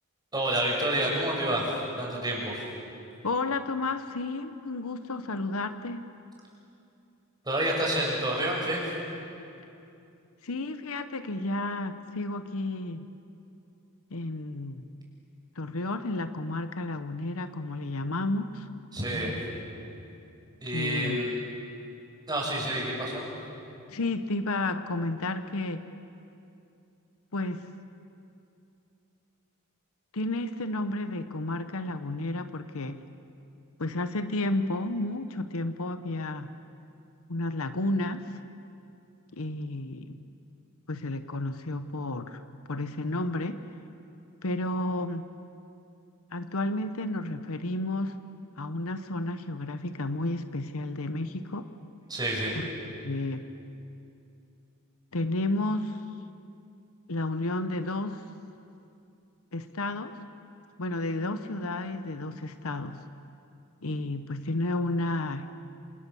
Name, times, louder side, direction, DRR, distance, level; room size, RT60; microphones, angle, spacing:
voice 1, 0.3-1.7 2.0-2.6 7.5-8.8 18.9-19.4 20.6-21.4 22.3-23.3 52.1-52.5, right 1 dB, 20° right, -3 dB, 7.0 m, -28 dB
voice 2, 3.2-6.0 10.4-13.0 14.1-14.9 15.6-18.7 20.7-21.2 23.9-25.8 27.3-27.6 30.1-33.0 33.8-36.5 37.3-38.4 39.3-40.2 40.9-42.4 42.7-43.6 44.4-45.3 46.3-48.2 48.6-51.7 52.6-52.7 53.0-53.5 55.1-56.0 57.1-58.3 59.5-60.1 60.8-63.0 63.8-65.5, left 2 dB, 70° left, 10 dB, 1.0 m, -31 dB
27.5 x 27.5 x 7.2 m, 2.7 s
head